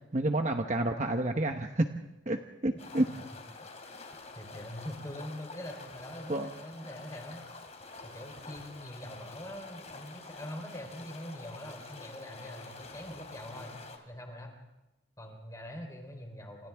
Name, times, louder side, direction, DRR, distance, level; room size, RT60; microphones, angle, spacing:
voice 1, 0.1-1.9 2.3-3.1 6.3-6.5, right 1 dB, 35° right, 5 dB, 1.0 m, -29 dB
voice 2, 2.7-3.1 3.6-3.7 4.4-7.4 8.0-13.7 14.1-14.5 15.2-16.7, equal, 15° left, 3 dB, 3.8 m, -43 dB
sound 1, 2.8-14.0, left 3 dB, 35° left, 3.0 m, -48 dB
29.5 x 28.0 x 3.6 m, 0.96 s
head